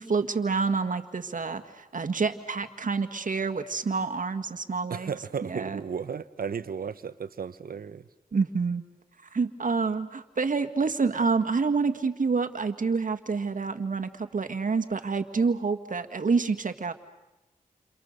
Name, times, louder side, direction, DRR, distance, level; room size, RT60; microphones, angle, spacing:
voice 1, 0.0-5.1 5.4-5.8 8.3-8.8 9.3-16.9, right 4 dB, 60° right, 8 dB, 1.8 m, -28 dB
voice 2, 4.9-8.1, right 6 dB, 80° right, 13 dB, 1.0 m, -34 dB
29.5 x 27.5 x 6.7 m, 1.0 s
cardioid pair, 55°, 15 cm